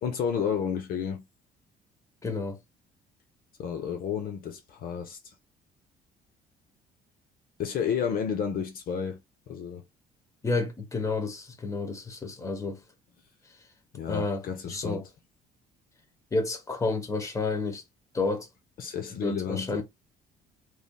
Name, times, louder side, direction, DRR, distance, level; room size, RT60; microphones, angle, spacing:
voice 1, 0.0-1.2 3.6-5.2 7.6-9.2 9.5-9.8 13.9-15.0 18.8-19.8, left 7 dB, 60° left, 0.6 m, -31 dB
voice 2, 2.2-2.6 10.4-12.8 14.1-15.0 16.3-17.8 18.1-18.5 19.1-19.8, left 3 dB, 20° left, 0.9 m, -30 dB
3.2 x 2.7 x 2.2 m
cardioid pair, 110°, 17 cm